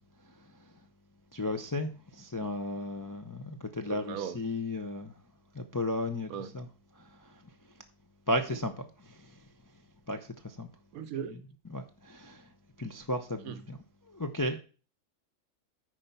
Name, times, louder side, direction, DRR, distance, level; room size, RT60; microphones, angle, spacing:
voice 1, 1.3-5.1 5.5-6.7 7.0-7.3 8.3-9.4 10.1-10.7 11.3-11.4 11.7-12.4 12.8-13.8 14.1-14.6, left 1 dB, 30° left, 0.3 m, -35 dB
voice 2, 3.9-4.4 6.3-6.5 10.9-11.3 13.5-13.6, right 8 dB, 80° right, 1.2 m, -37 dB
9.8 x 4.5 x 5.5 m
omnidirectional pair, 1.5 m